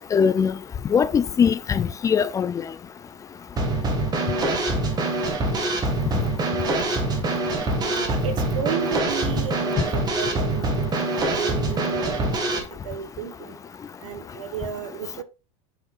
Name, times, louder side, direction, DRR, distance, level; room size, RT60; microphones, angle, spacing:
voice 1, 0.1-0.5 0.9-2.5, left 7 dB, 20° left, 0.4 m, -21 dB
Drum kit / Snare drum, 3.6-12.6, right 2 dB, 25° right, 1.9 m, -24 dB
voice 2, 7.8-11.1 11.4-13.6 14.0-15.2, right 8 dB, 90° right, 1.3 m, -33 dB
8.0 x 5.7 x 2.5 m
supercardioid pair, 125°, 16 cm